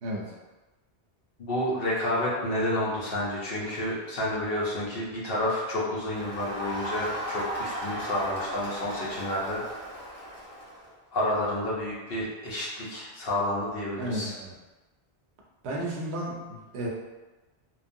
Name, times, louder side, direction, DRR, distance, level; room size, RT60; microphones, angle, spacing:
voice 1, 0.0-0.3 14.0-14.6 15.6-16.9, right 1 dB, 80° right, -2 dB, 0.9 m, -33 dB
voice 2, 1.4-9.6 11.1-14.3, left 1 dB, 60° left, -6 dB, 0.9 m, -30 dB
Crowd, 6.1-10.9, equal, 40° left, 1.3 m, -36 dB
3.1 x 2.0 x 2.6 m, 1.2 s
omnidirectional pair, 1.1 m